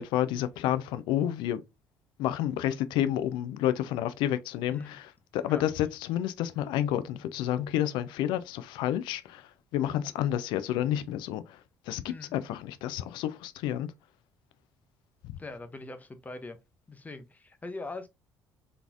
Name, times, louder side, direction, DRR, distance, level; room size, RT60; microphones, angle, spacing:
voice 1, 0.0-1.6 2.2-11.6 11.9-13.9, left 12 dB, 60° left, 0.4 m, -30 dB
voice 2, 15.4-16.6 16.9-18.1, left 3 dB, 15° left, 0.9 m, -41 dB
4.1 x 3.3 x 2.4 m
figure-of-eight pair, 50°, 9 cm